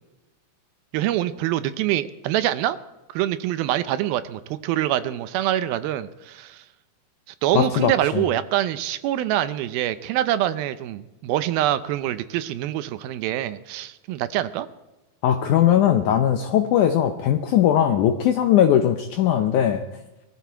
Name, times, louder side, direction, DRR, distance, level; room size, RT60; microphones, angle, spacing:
voice 1, 0.9-2.8 3.1-6.6 7.4-14.7, right 13 dB, 80° right, 13 dB, 2.5 m, -25 dB
voice 2, 7.5-8.2 15.2-19.8, left 10 dB, 80° left, 7 dB, 1.8 m, -19 dB
21.0 x 14.5 x 4.5 m, 1.0 s
omnidirectional pair, 4.4 m